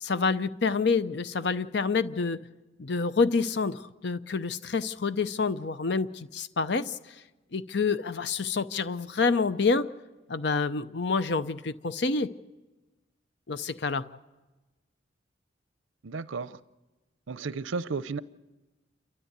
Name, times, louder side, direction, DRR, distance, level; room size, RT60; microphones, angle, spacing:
voice 1, 0.0-2.4 2.8-7.0 7.5-9.9 10.3-12.3 13.5-14.0, left 4 dB, 60° left, 14 dB, 0.6 m, -27 dB
voice 2, 16.0-16.6 17.3-18.2, right 4 dB, 80° right, 16 dB, 0.6 m, -33 dB
29.0 x 13.0 x 8.1 m, 1.2 s
head